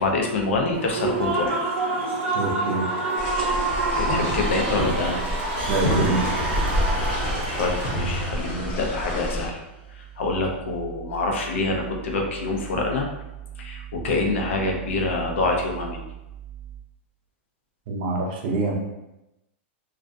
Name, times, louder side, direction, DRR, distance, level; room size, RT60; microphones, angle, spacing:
voice 1, 0.0-1.6 3.9-5.2 7.6-9.6 9.9-13.1 13.6-16.0, left 2 dB, 90° left, 1 dB, 0.6 m, -26 dB
Human voice / Cheering / Applause, 0.7-8.4, right 3 dB, 85° right, 0.6 m, -27 dB
voice 2, 2.3-2.8 5.7-6.3 17.9-18.7, right 3 dB, 45° right, 0 dB, 0.5 m, -25 dB
sound 1, 3.2-9.5, equal, 30° left, 0.7 m, -28 dB
sound 2, 5.6-9.9, equal, 15° right, 1.0 m, -37 dB
2.4 x 2.2 x 2.5 m, 0.95 s
supercardioid pair, 170°, 7 cm